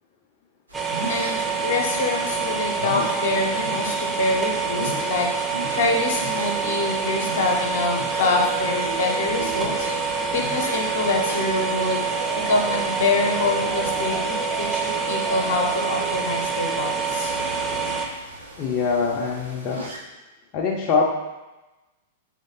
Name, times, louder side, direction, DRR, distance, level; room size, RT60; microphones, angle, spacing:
sound 1, 0.7-18.1, right 5 dB, 15° right, 0.5 m, -26 dB
sound 2, 0.7-20.0, right 1 dB, 85° right, 1.2 m, -39 dB
voice 1, 1.1-12.0 12.5-17.3, left 3 dB, 60° left, 0 dB, 0.8 m, -25 dB
sound 3, 8.1-16.1, right 4 dB, 65° right, 0.4 m, -34 dB
voice 2, 18.6-19.8 20.5-21.0, left 5 dB, 35° left, -2 dB, 0.5 m, -23 dB
5.0 x 3.1 x 2.7 m, 1.1 s
figure-of-eight pair, 100°, 0 cm